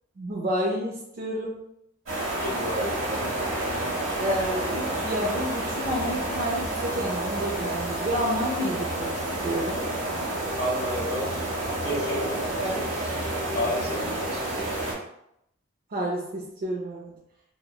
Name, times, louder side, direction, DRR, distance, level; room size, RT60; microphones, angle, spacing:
voice 1, 0.2-1.6 4.2-9.1 9.4-9.8 12.6-12.8 15.9-17.1, equal, 45° right, -4 dB, 0.4 m, -29 dB
sound 1, 2.1-14.9, right 1 dB, 90° right, 0.8 m, -29 dB
voice 2, 2.3-3.4 10.6-11.5 11.8-13.0 13.5-14.7, equal, 55° left, -5 dB, 1.0 m, -32 dB
2.9 x 2.1 x 2.2 m, 0.77 s
head